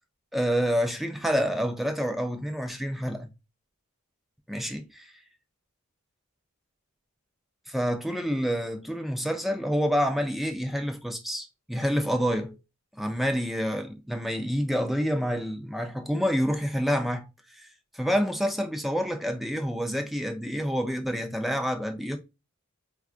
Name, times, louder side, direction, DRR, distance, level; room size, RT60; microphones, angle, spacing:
voice 1, 0.3-3.3 4.5-5.1 7.7-12.6 13.0-17.3 17.6-17.7 17.9-22.2, equal, ahead, 0.4 m, -28 dB
4.6 x 2.3 x 2.4 m
head